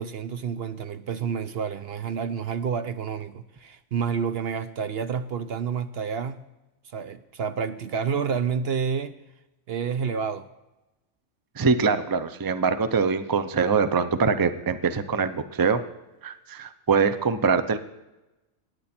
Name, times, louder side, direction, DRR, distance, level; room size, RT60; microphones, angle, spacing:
voice 1, 0.0-6.4 6.9-9.2 9.7-10.5, right 6 dB, 60° right, 11 dB, 0.9 m, -29 dB
voice 2, 11.6-15.8 16.2-17.8, right 5 dB, 25° right, 11 dB, 0.6 m, -23 dB
24.5 x 9.7 x 4.4 m, 1.0 s
omnidirectional pair, 1.2 m